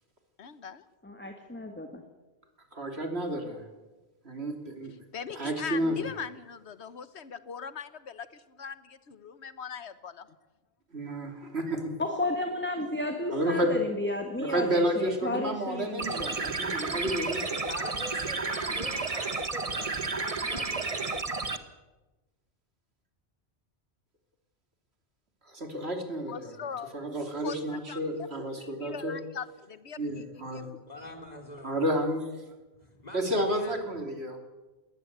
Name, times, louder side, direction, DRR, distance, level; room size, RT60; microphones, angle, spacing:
voice 1, 0.4-0.8 5.1-10.3 26.3-26.9 27.4-28.0 28.6-31.1, left 6 dB, 80° left, 14 dB, 1.4 m, -41 dB
voice 2, 1.0-2.0 12.0-16.5, left 2 dB, 10° left, 4 dB, 1.8 m, -33 dB
voice 3, 2.7-3.6 4.2-5.0 5.3-6.0 10.9-11.9 13.3-13.7 14.4-17.6 25.5-29.2 30.0-30.7 31.6-32.3 33.1-34.4, right 1 dB, 70° right, 5 dB, 3.2 m, -31 dB
sound 1, 16.0-21.6, right 3 dB, 35° right, 1.2 m, -32 dB
voice 4, 17.7-21.2 30.9-31.7 32.8-33.8, left 1 dB, 40° left, 5 dB, 3.6 m, -43 dB
21.0 x 19.0 x 8.1 m, 1.1 s
omnidirectional pair, 1.1 m